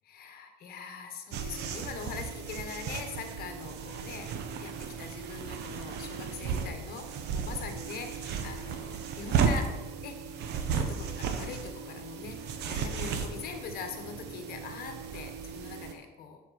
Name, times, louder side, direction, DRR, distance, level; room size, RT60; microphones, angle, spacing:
voice 1, 0.1-4.3 4.6-9.7 10.0-10.4 10.7-12.4 12.6-16.4, left 6 dB, 65° left, 6 dB, 1.3 m, -42 dB
sound 1, 1.3-15.9, right 6 dB, 80° right, 1.0 m, -34 dB
7.7 x 6.9 x 4.2 m, 1.2 s
cardioid pair, 110°, 17 cm